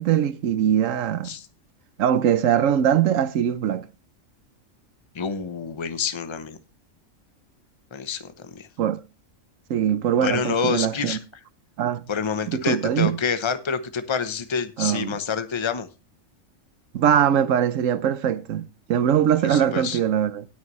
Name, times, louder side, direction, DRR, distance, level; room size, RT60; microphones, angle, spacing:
voice 1, 0.0-1.3 2.0-3.8 8.8-9.0 9.7-11.2 11.8-12.1 12.5-13.2 14.8-15.2 16.9-20.5, right 9 dB, 80° right, 1.1 m, -22 dB
voice 2, 5.1-6.6 7.9-8.7 10.2-11.2 12.1-15.9 19.4-20.0, left 6 dB, 25° left, 0.8 m, -27 dB
18.5 x 6.4 x 3.1 m
omnidirectional pair, 1.3 m